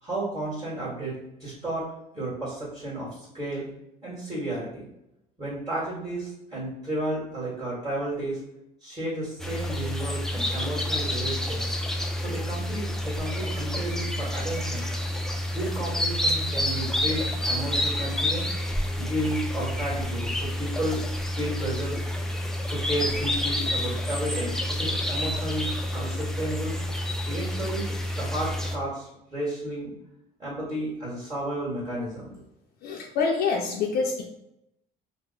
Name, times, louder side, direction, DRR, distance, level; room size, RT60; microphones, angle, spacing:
voice 1, 0.0-3.7 4.0-4.8 5.4-8.4 8.8-11.7 12.2-14.9 15.5-18.5 19.0-21.1 21.3-22.0 22.7-26.8 27.3-27.9 28.1-29.9 30.4-32.3, right 1 dB, 20° right, -6 dB, 1.4 m, -32 dB
sound 1, 9.4-28.8, left 1 dB, 5° left, 0.3 m, -29 dB
voice 2, 32.8-34.2, left 5 dB, 70° left, -1 dB, 0.5 m, -26 dB
2.9 x 2.0 x 3.9 m, 0.84 s
cardioid pair, 110°, 17 cm